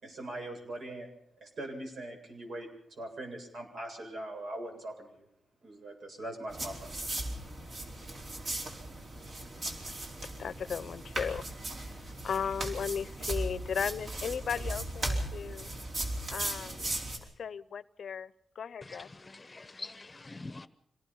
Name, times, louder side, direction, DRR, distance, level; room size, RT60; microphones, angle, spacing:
voice 1, 0.0-1.1 1.4-2.7 3.0-5.2 5.6-7.0, right 1 dB, 70° right, 3 dB, 7.8 m, -41 dB
sound 1, 6.5-17.2, right 1 dB, 50° right, 4.5 m, -37 dB
voice 2, 10.4-11.4 12.2-15.7 16.3-16.9 17.4-19.1, left 7 dB, 70° left, 17 dB, 0.7 m, -36 dB
voice 3, 18.9-20.7, left 2 dB, 25° left, 12 dB, 0.9 m, -45 dB
26.0 x 18.5 x 5.5 m, 0.79 s
wide cardioid pair, 125°, 0 cm